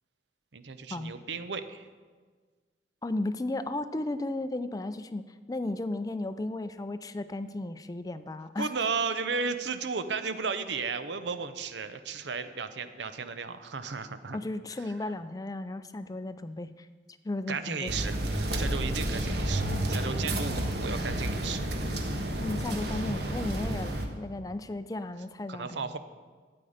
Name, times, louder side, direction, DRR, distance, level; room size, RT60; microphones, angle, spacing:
voice 1, 0.5-1.9 8.6-14.4 17.5-19.6 19.9-21.7 25.5-26.0, right 5 dB, 85° right, 11 dB, 0.7 m, -34 dB
voice 2, 3.0-8.7 14.3-16.9 17.2-17.9 22.4-25.9, left 2 dB, 20° left, 12 dB, 0.4 m, -35 dB
sound 1, 17.9-24.1, right 1 dB, 65° right, 1.3 m, -30 dB
13.0 x 8.7 x 5.0 m, 1.5 s
head